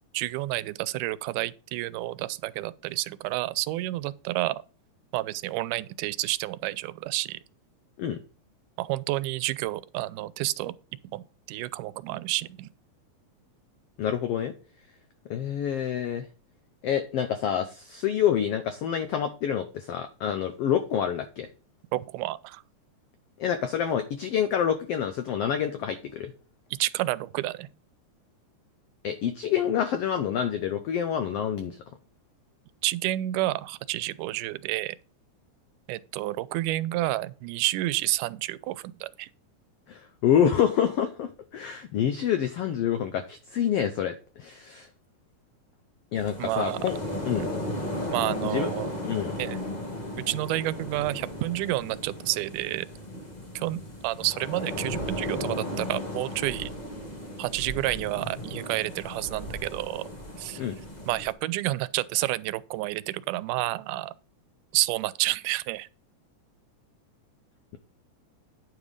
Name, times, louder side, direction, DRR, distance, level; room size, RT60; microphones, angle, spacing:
voice 1, 0.1-4.6 5.1-7.4 8.8-10.7 11.1-12.7 21.9-22.6 26.8-27.7 32.8-35.0 35.9-39.3 46.4-46.8 48.1-48.9 49.4-49.6 50.2-52.9 53.1-53.2 53.6-56.7 57.4-60.0 60.4-60.6 61.1-64.1 64.7-65.9, right 17 dB, 90° right, 2.1 m, -30 dB
voice 2, 14.0-14.5 15.3-16.3 16.8-21.5 23.4-26.3 29.0-31.8 39.9-44.9 46.1-46.9 47.3-47.5 48.4-48.7 49.0-49.3 60.6-60.7, left 9 dB, 90° left, 1.3 m, -27 dB
sound 1, 46.1-61.3, left 1 dB, 55° left, 0.4 m, -35 dB
9.5 x 5.0 x 5.2 m
omnidirectional pair, 3.6 m